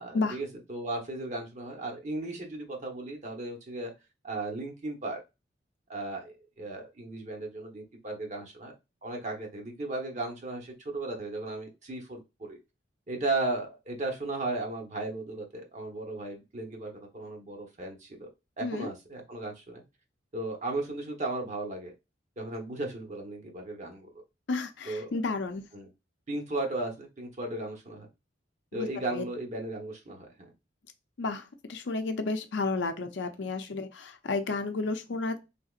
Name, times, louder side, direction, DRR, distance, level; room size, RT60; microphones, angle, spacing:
voice 1, 0.0-3.9 4.2-5.2 5.9-8.7 9.0-12.2 12.5-12.6 13.1-18.3 18.6-19.8 20.3-21.9 22.4-24.1 24.9-25.1 25.7-25.9 26.3-28.1 28.7-30.5, right 2 dB, 40° right, 0.9 m, -35 dB
voice 2, 18.6-18.9 24.5-25.7 28.7-29.2 31.2-35.4, left 3 dB, 70° left, 0.5 m, -32 dB
3.4 x 2.8 x 2.4 m
head